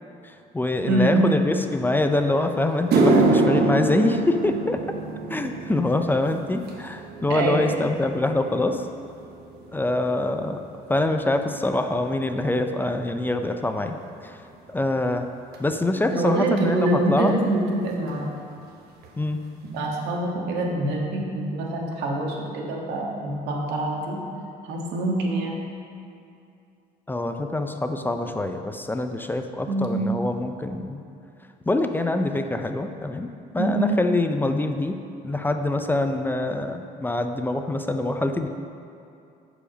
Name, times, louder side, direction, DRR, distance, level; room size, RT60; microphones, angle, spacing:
voice 1, 0.2-4.8 5.3-8.9 9.7-10.6 10.9-14.0 14.2-14.4 14.7-15.3 15.6-17.3 19.2-19.4 27.1-31.0 31.7-33.3 33.5-38.5, left 2 dB, 10° left, 6 dB, 0.4 m, -25 dB
voice 2, 0.8-1.3 7.3-7.8 16.1-18.3 19.6-24.2 24.6-25.6 29.7-30.0 33.6-33.9, right 2 dB, 90° right, -1 dB, 1.5 m, -25 dB
sound 1, 2.2-2.3 2.7-11.2 11.5-11.9 12.7-12.8 15.5-15.6 17.3-17.4 17.6-17.8 18.1-18.6 19.0-19.1 19.6-19.7, right 3 dB, 70° right, 1.1 m, -26 dB
11.5 x 5.0 x 5.0 m, 2.6 s
cardioid pair, 110°, 17 cm